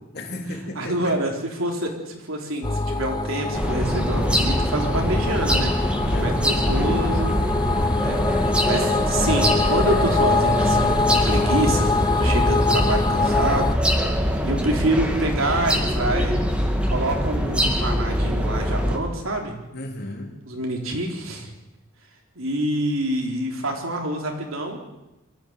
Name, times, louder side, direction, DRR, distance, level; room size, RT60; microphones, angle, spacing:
voice 1, 0.1-1.1 6.1-6.6 19.7-20.3, left 1 dB, 50° left, 2 dB, 3.7 m, -34 dB
voice 2, 0.8-1.3 1.6-5.7 6.1-7.3 8.0-11.9 12.2-13.7 14.4-16.4 16.9-19.6 20.5-21.5 22.4-24.8, right 1 dB, 75° right, 2 dB, 4.0 m, -26 dB
sound 1, 2.6-13.7, left 3 dB, 20° left, 0.6 m, -24 dB
sound 2, 3.5-19.0, equal, 5° right, 2.3 m, -23 dB
23.5 x 14.5 x 8.3 m, 0.97 s
head